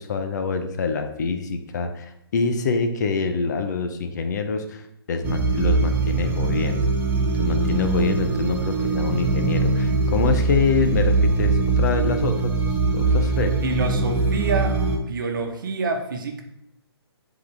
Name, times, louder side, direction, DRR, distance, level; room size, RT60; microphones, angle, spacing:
voice 1, 0.0-4.8 5.1-6.9 7.4-12.5 12.9-13.6, left 4 dB, 45° left, 7 dB, 0.6 m, -25 dB
sound 1, 5.2-15.0, right 3 dB, 15° right, 0.6 m, -22 dB
voice 2, 13.6-16.4, right 4 dB, 55° right, 4 dB, 1.0 m, -27 dB
9.5 x 4.0 x 3.3 m, 0.79 s
figure-of-eight pair, 140°, 13 cm